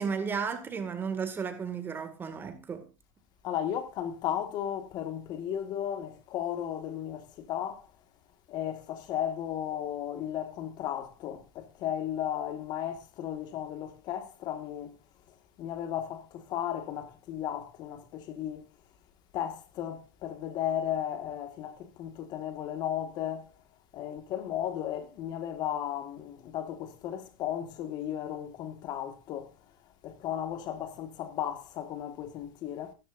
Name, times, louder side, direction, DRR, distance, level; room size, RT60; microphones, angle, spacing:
voice 1, 0.0-2.9, right 6 dB, 20° right, 2.0 m, -34 dB
voice 2, 3.4-7.8 8.5-15.0 15.6-18.7 19.3-23.5 23.9-29.5 30.0-32.9, left 10 dB, 45° left, 1.7 m, -35 dB
14.5 x 13.0 x 2.5 m
supercardioid pair, 135°, 10 cm